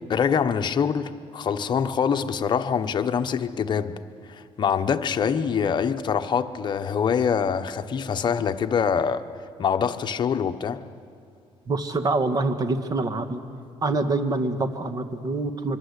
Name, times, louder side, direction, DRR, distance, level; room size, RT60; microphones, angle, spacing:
voice 1, 0.1-4.0 4.3-9.2 9.6-10.8, left 7 dB, 45° left, 1.1 m, -24 dB
voice 2, 11.7-13.4 13.8-15.8, right 3 dB, 35° right, 1.8 m, -25 dB
25.5 x 23.0 x 8.4 m
cardioid pair, 115°, 11 cm